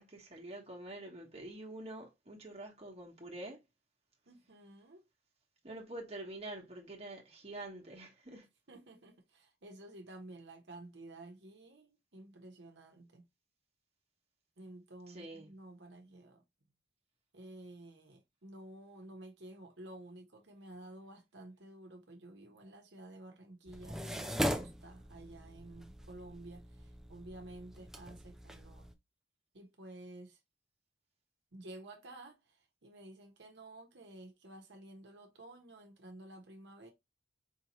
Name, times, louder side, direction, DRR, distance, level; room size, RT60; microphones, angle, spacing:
voice 1, 0.0-3.6 5.6-8.5 15.1-15.5, right 1 dB, 35° right, 1.2 m, -46 dB
voice 2, 4.3-5.0 8.7-13.2 14.6-16.4 17.3-28.9 29.5-30.4 31.5-36.9, right 1 dB, 70° right, 1.0 m, -52 dB
sound 1, 23.7-28.9, equal, 5° right, 0.4 m, -40 dB
4.6 x 2.8 x 3.0 m
head